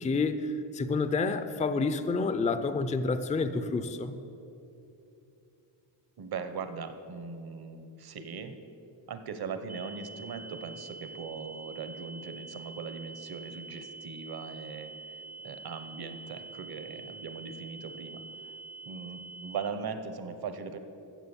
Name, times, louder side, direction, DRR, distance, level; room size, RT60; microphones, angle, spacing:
voice 1, 0.0-4.1, left 3 dB, 15° left, 11 dB, 0.4 m, -29 dB
voice 2, 6.2-8.6 9.1-18.6 18.8-20.8, right 5 dB, 55° right, 9 dB, 1.0 m, -40 dB
sound 1, 9.7-19.7, right 4 dB, 40° right, 0.6 m, -46 dB
14.5 x 7.3 x 7.1 m, 2.9 s
wide cardioid pair, 165°, 43 cm